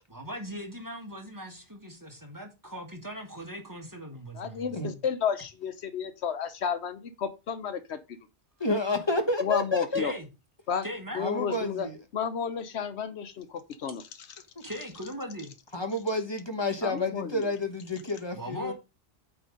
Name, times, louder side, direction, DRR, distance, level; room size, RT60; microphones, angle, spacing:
voice 1, 0.1-5.0 9.9-10.3 10.8-11.2 14.6-15.5 18.3-18.7, equal, 15° right, 1.6 m, -39 dB
voice 2, 4.4-8.0 9.4-10.1 10.7-10.8 11.1-11.9 12.1-14.0 16.8-17.5, left 7 dB, 80° left, 1.1 m, -32 dB
voice 3, 8.6-10.0 11.2-12.0 14.6-14.7 15.7-18.7, left 2 dB, 25° left, 1.1 m, -29 dB
8.7 x 3.5 x 5.3 m
omnidirectional pair, 1.1 m